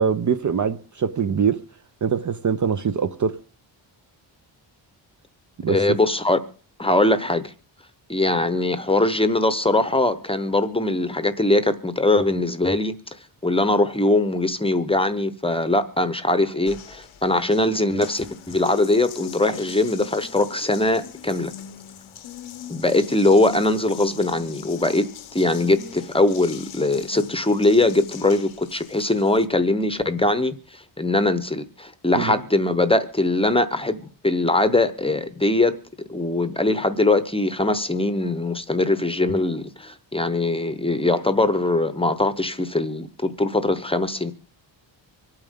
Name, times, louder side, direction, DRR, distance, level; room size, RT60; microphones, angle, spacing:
voice 1, 0.0-1.6 2.0-3.4 5.6-6.0 32.1-32.3, right 6 dB, 40° right, 0.6 m, -23 dB
voice 2, 5.7-6.4 6.8-7.5 8.1-12.9 13.4-21.5 22.7-25.1 25.3-35.8 36.1-44.3, left 2 dB, 10° left, 0.8 m, -21 dB
Water tap faucet, 16.7-29.5, left 9 dB, 90° left, 1.0 m, -40 dB
25.5 x 8.9 x 3.7 m
wide cardioid pair, 140°, 46 cm